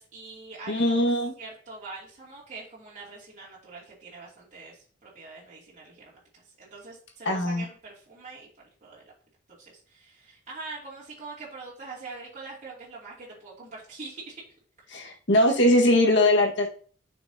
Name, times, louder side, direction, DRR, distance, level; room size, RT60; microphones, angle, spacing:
voice 1, 0.0-1.0 1.4-6.2 6.4-9.1 9.5-14.4, right 3 dB, 40° right, -6 dB, 2.8 m, -43 dB
voice 2, 0.7-1.3 7.2-7.6 14.9-16.7, left 1 dB, 65° left, 1 dB, 1.7 m, -21 dB
9.9 x 6.1 x 2.8 m, 0.44 s
head